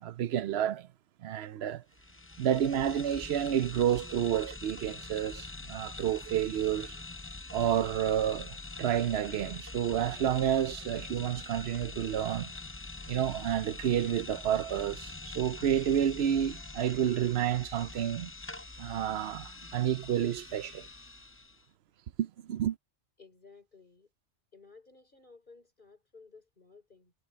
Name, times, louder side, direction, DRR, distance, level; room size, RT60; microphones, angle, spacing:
voice 1, 0.0-0.9 1.2-1.8 2.4-7.0 7.5-12.5 13.1-18.3 18.8-20.9 22.2-22.8, right 10 dB, 70° right, 0.8 m, -30 dB
sound 1, 1.9-21.6, left 3 dB, 20° left, 0.3 m, -44 dB
voice 2, 23.2-24.1 24.5-27.1, left 4 dB, 45° left, 4.1 m, -56 dB
omnidirectional pair, 1.2 m